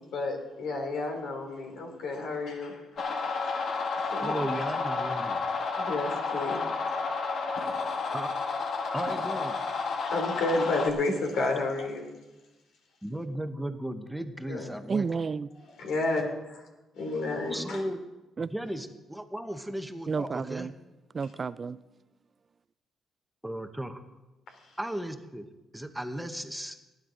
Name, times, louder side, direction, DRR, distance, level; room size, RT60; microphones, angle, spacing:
voice 1, 0.1-2.8 4.1-4.7 5.8-6.6 6.9-7.5 8.0-8.2 10.1-12.1 14.5-14.8 15.6-16.7 16.9-17.9 20.1-20.3, left 2 dB, 75° left, 3 dB, 2.9 m, -31 dB
sound 1, 3.0-10.9, left 4 dB, 60° left, 1.6 m, -31 dB
voice 2, 4.2-5.5 8.1-8.3 8.9-9.6 13.0-15.1 17.5-18.0 18.5-20.7 23.4-24.0 24.8-25.5 25.7-26.8, right 1 dB, 5° right, 7 dB, 0.9 m, -35 dB
voice 3, 14.9-15.5 18.4-18.5 20.1-20.7 21.1-21.8, right 5 dB, 40° right, 17 dB, 0.3 m, -31 dB
18.5 x 9.5 x 3.8 m, 1.1 s
cardioid pair, 90°, 0 cm